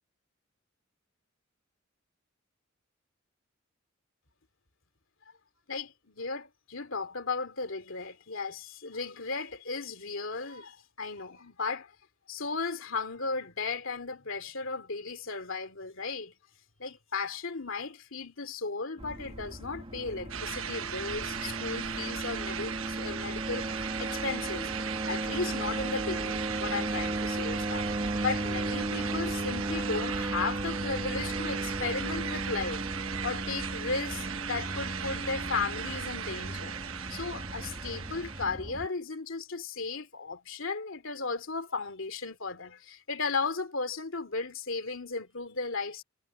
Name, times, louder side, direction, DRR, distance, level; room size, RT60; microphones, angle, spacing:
voice 1, 5.7-11.9 12.3-16.3 16.8-24.7 25.1-27.9 28.2-32.8 33.2-46.0, left 4 dB, 70° left, 2.7 m, -35 dB
sound 1, 19.0-38.9, right 1 dB, 30° right, 1.9 m, -36 dB
sound 2, 20.3-38.4, right 8 dB, 85° right, 1.2 m, -37 dB
head